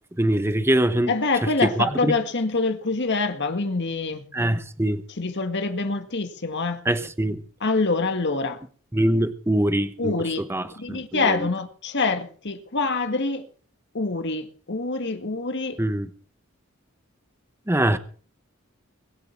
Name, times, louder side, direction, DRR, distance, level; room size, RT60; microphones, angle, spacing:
voice 1, 0.2-1.1 1.4-2.1 4.3-5.0 6.8-7.4 8.9-11.5 15.8-16.1 17.7-18.0, right 1 dB, 10° right, 0.9 m, -23 dB
voice 2, 1.1-4.2 5.2-6.8 7.6-8.6 10.0-10.5 10.8-13.4 13.9-15.8, left 3 dB, 55° left, 1.9 m, -25 dB
22.0 x 7.7 x 6.0 m
head